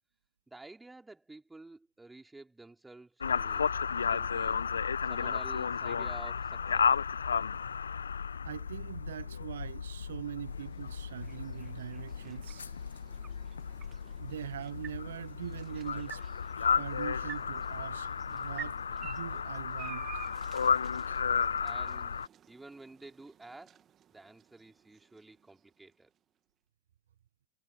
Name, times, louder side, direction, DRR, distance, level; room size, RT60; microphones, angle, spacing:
voice 1, 0.5-4.6 5.0-6.9 21.6-22.2 22.5-23.8 24.1-26.1, right 2 dB, 10° right, 4.8 m, -51 dB
sound 1, 3.2-22.3, left 6 dB, 70° left, 1.3 m, -33 dB
voice 2, 8.4-12.7 14.2-16.2 16.8-20.1, right 10 dB, 65° right, 1.0 m, -42 dB
sound 2, 9.8-25.9, right 9 dB, 25° right, 2.7 m, -52 dB
figure-of-eight pair, 90°, 0 cm